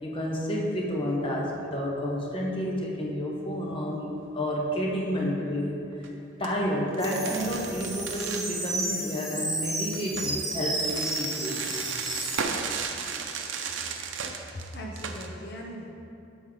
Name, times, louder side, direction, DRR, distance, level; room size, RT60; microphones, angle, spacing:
voice 1, 0.0-5.8 6.4-11.7, equal, 25° left, -2 dB, 0.9 m, -30 dB
sound 1, 5.9-6.1 6.4-6.5 6.9-8.5 9.9-15.3, right 6 dB, 80° right, 0.6 m, -35 dB
sound 2, 7.0-12.4, right 1 dB, ahead, 0.9 m, -32 dB
voice 2, 14.4-15.9, equal, 60° left, -1 dB, 0.8 m, -39 dB
7.1 x 5.5 x 5.0 m, 2.8 s
head